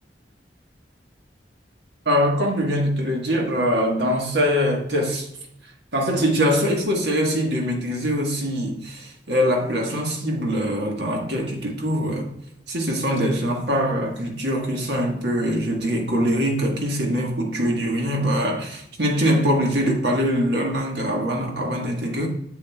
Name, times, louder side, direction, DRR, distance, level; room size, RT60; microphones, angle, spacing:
voice 1, 2.0-5.3 5.9-12.3 12.7-22.3, equal, 65° right, 1.5 m, -23 dB
7.3 x 7.2 x 2.3 m
head